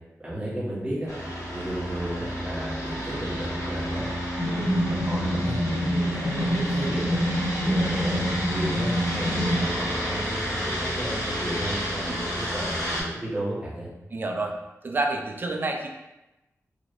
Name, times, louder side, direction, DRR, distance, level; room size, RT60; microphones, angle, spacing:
voice 1, 0.2-1.1 1.5-4.1 4.4-7.2 7.6-13.9, right 1 dB, 20° right, -8 dB, 1.1 m, -33 dB
sound 1, 1.1-13.0, equal, 90° left, 1.3 m, -30 dB
sound 2, 4.4-9.7, equal, 25° left, 0.6 m, -27 dB
voice 2, 14.1-14.6 14.8-15.9, right 2 dB, 35° right, 3 dB, 0.4 m, -28 dB
3.1 x 2.7 x 2.6 m, 0.97 s
wide cardioid pair, 120°, 6 cm